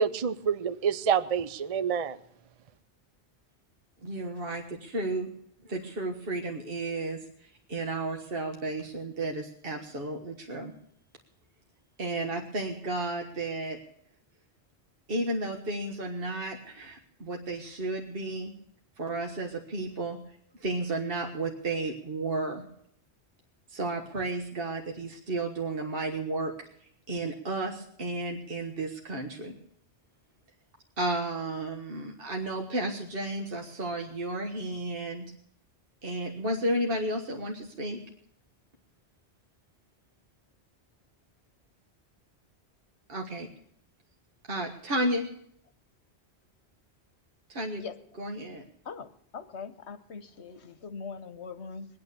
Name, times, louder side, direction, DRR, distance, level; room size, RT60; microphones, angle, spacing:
voice 1, 0.0-2.2, right 7 dB, 40° right, 13 dB, 0.6 m, -27 dB
voice 2, 4.0-5.3 5.7-7.2 7.7-10.7 12.0-13.8 15.1-18.5 19.0-20.2 20.6-22.6 23.7-26.5 27.1-29.5 31.0-35.2 36.0-38.0 43.1-43.5 44.5-45.3 47.5-47.8 48.2-48.6, right 2 dB, 55° right, 2 dB, 1.7 m, -32 dB
voice 3, 48.9-51.9, left 5 dB, 80° left, 12 dB, 1.4 m, -41 dB
22.5 x 8.9 x 6.8 m, 0.69 s
omnidirectional pair, 1.1 m